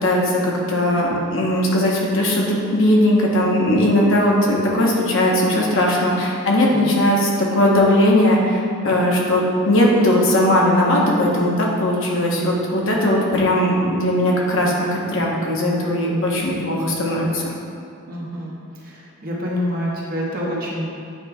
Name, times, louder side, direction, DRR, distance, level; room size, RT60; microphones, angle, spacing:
voice 1, 0.0-17.5, left 1 dB, 60° left, -3 dB, 1.0 m, -18 dB
voice 2, 18.1-18.5 18.8-18.9 19.2-20.9, equal, 45° right, -5 dB, 1.2 m, -26 dB
8.8 x 5.2 x 2.3 m, 2.5 s
head